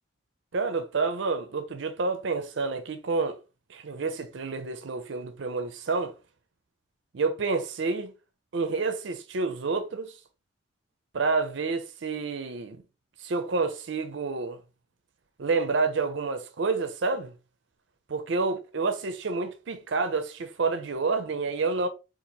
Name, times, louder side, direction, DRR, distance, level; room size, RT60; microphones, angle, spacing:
voice 1, 0.5-3.4 3.7-6.1 7.1-8.1 8.5-10.1 11.1-12.8 13.2-14.6 15.4-17.3 18.1-21.9, right 4 dB, 65° right, 0.5 m, -29 dB
3.9 x 2.5 x 2.8 m
head